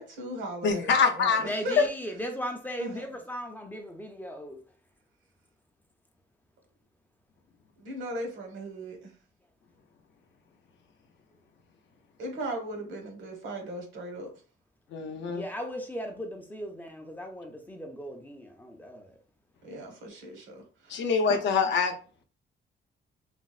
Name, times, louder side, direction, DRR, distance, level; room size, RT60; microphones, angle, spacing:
voice 1, 0.0-1.9 2.8-3.1 7.8-9.1 12.2-14.3 19.6-21.4, right 1 dB, 85° right, 1.0 m, -38 dB
voice 2, 0.6-1.4 1.8-1.9 14.9-15.4 20.9-21.9, left 5 dB, 70° left, 0.5 m, -24 dB
voice 3, 1.4-4.6 15.3-19.2, equal, 10° left, 0.4 m, -37 dB
4.0 x 2.0 x 2.3 m
wide cardioid pair, 175°, 19 cm